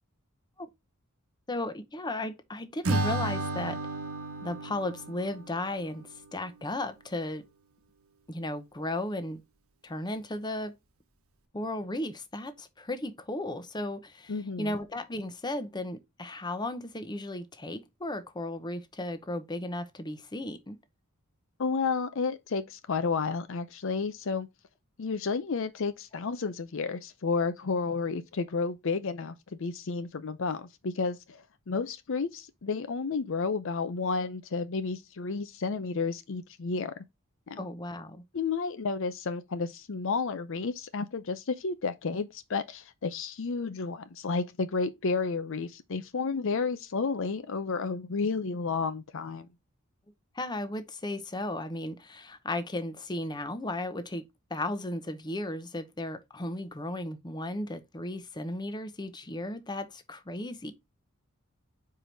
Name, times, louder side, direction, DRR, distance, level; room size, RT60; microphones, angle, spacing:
voice 1, 1.5-3.8 4.4-7.5 8.3-9.4 9.8-10.7 11.5-14.3 14.6-20.8 37.6-38.2 50.3-54.2 54.5-60.7, left 1 dB, 20° left, 0.8 m, -35 dB
Acoustic guitar / Strum, 2.8-6.1, right 2 dB, 85° right, 1.3 m, -33 dB
voice 2, 14.3-14.7 21.6-24.5 25.0-36.9 37.5-37.6 38.3-49.5, left 4 dB, 65° left, 0.6 m, -31 dB
4.8 x 4.5 x 5.1 m
head